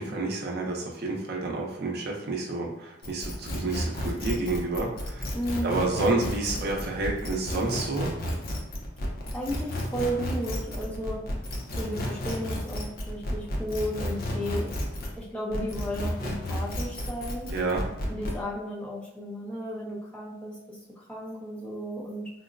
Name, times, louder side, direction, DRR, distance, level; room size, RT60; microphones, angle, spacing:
voice 1, 0.0-5.3 5.6-8.1 17.5-17.8, right 2 dB, 55° right, -1 dB, 0.5 m, -29 dB
sound 1, 3.0-15.2 15.5-18.4, equal, 50° left, 0.6 m, -32 dB
voice 2, 5.3-5.8 9.3-11.2 11.8-14.7 15.2-17.5 18.1-22.3, equal, 5° left, -6 dB, 0.7 m, -34 dB
3.8 x 2.1 x 2.5 m, 0.89 s
head